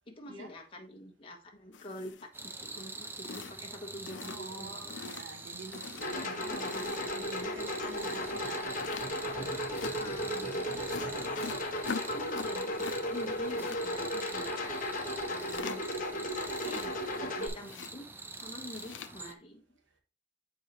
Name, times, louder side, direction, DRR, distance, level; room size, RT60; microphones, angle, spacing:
voice 1, 0.1-5.0 9.8-10.9 11.2-11.6 11.9-14.8 15.3-16.3 16.6-18.0 18.4-19.6, left 1 dB, 30° left, 1.3 m, -46 dB
sound 1, 1.7-2.4 2.8-2.9 3.2-3.7 4.1-4.6 4.9-5.3 5.7-7.2 7.8-8.2 8.8-9.1 9.7-9.9 10.9-13.0 13.2-13.8 15.4-16.0 16.4-17.2 17.6-17.9 18.6-19.1, left 5 dB, 75° left, 0.5 m, -43 dB
sound 2, 2.3-19.3, right 3 dB, 10° right, 0.4 m, -45 dB
voice 2, 4.2-8.8 16.6-16.9, right 2 dB, 85° right, 1.4 m, -47 dB
sound 3, 6.0-17.5, left 1 dB, 45° left, 1.3 m, -35 dB
8.0 x 4.7 x 3.0 m
head